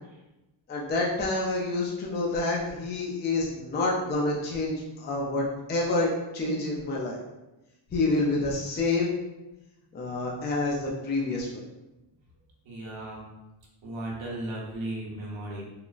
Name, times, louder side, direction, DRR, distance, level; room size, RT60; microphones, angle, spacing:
voice 1, 0.7-7.2 7.9-9.1 9.9-11.6, left 2 dB, 25° left, -3 dB, 0.3 m, -28 dB
voice 2, 12.6-13.3 13.8-15.6, right 1 dB, 65° right, -3 dB, 1.0 m, -36 dB
3.7 x 2.0 x 2.3 m, 1.0 s
wide cardioid pair, 165°, 50 cm